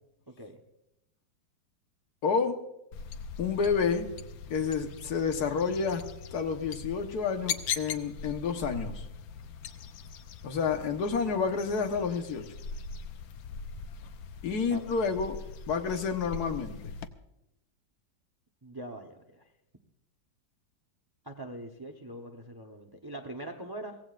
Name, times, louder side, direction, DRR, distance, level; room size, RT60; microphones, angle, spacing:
voice 1, 0.3-0.6 14.5-14.9 18.6-19.5 21.2-24.0, right 1 dB, 20° right, 4 dB, 0.6 m, -43 dB
voice 2, 2.2-2.6 3.4-4.1 4.5-6.0 6.3-9.1 10.4-12.5 14.4-15.4 15.7-16.9, left 5 dB, 60° left, 5 dB, 1.7 m, -29 dB
sound 1, 2.9-17.1, left 6 dB, 85° left, 1.5 m, -41 dB
23.5 x 17.0 x 2.5 m, 0.87 s
omnidirectional pair, 2.0 m